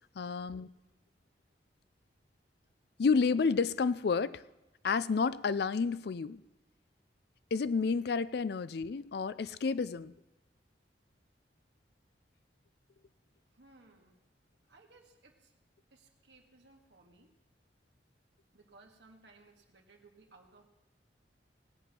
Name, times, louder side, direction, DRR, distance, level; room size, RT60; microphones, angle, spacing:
voice 1, 0.2-0.7 3.0-4.4 4.8-6.4 7.5-10.1, left 5 dB, 65° left, 17 dB, 0.4 m, -30 dB
voice 2, 13.2-14.2 14.7-15.6 15.9-17.3 18.5-20.6, right 3 dB, 80° right, 1 dB, 1.9 m, -61 dB
18.5 x 8.1 x 6.0 m, 1.0 s
head